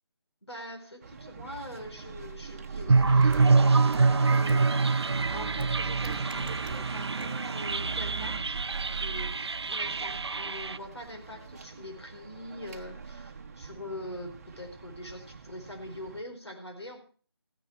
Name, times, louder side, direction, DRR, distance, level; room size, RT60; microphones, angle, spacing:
voice 1, 0.4-8.6 8.9-17.0, left 1 dB, 90° left, 3 dB, 4.6 m, -43 dB
sound 1, 1.0-16.2, right 5 dB, 35° right, 1.0 m, -39 dB
sound 2, 2.9-10.8, right 4 dB, 80° right, 0.6 m, -25 dB
sound 3, 3.3-3.4 3.9-4.0 4.5-4.6 5.6-5.7 6.0-6.8 7.2-7.3, right 4 dB, 5° right, 1.3 m, -40 dB
15.0 x 9.8 x 4.6 m, 0.40 s
figure-of-eight pair, 165°, 14 cm